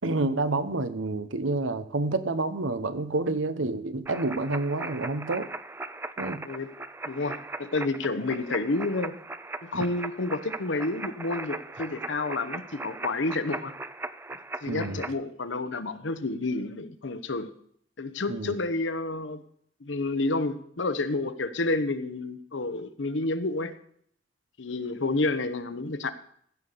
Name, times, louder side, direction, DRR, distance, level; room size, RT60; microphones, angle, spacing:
voice 1, 0.0-5.5 6.2-6.5 9.7-9.8 14.7-15.0 18.3-18.6, right 2 dB, 85° right, 12 dB, 1.0 m, -29 dB
sound 1, 4.1-15.1, right 2 dB, 10° right, 0.4 m, -38 dB
voice 2, 7.1-9.2 9.6-13.7 14.6-17.5 18.0-19.4 19.8-23.8 24.6-26.1, left 2 dB, 75° left, 11 dB, 0.9 m, -30 dB
15.5 x 5.7 x 6.7 m, 0.63 s
head